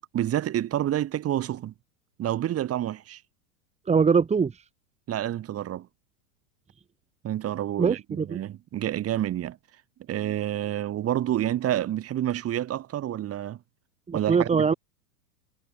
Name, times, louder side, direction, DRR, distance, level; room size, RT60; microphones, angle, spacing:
voice 1, 0.1-1.7 2.2-3.2 5.1-5.9 7.2-9.6 10.1-13.6 14.1-14.8, right 12 dB, 30° right, 3.2 m, -28 dB
voice 2, 3.9-4.6 7.8-8.4 14.1-14.7, right 5 dB, 15° right, 2.0 m, -22 dB
supercardioid pair, 130°, 49 cm